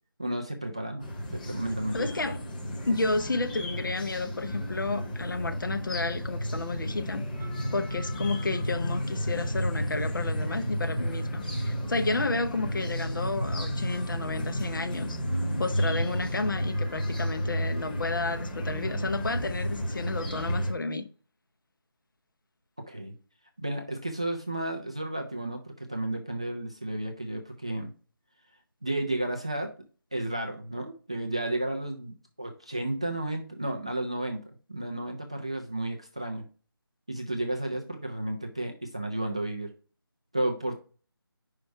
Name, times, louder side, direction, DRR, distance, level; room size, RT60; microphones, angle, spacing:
voice 1, 0.2-2.1 22.9-23.1 23.6-27.9 28.8-29.7 30.1-34.4 34.7-36.5 37.1-39.7 40.3-40.7, right 1 dB, 15° right, 0.3 m, -32 dB
sound 1, 1.0-20.7, equal, 20° left, 0.9 m, -32 dB
voice 2, 1.9-2.4 2.9-7.2 7.7-15.2 15.6-21.1, left 3 dB, 55° left, 0.8 m, -31 dB
5.2 x 4.5 x 4.5 m
figure-of-eight pair, 165°, 13 cm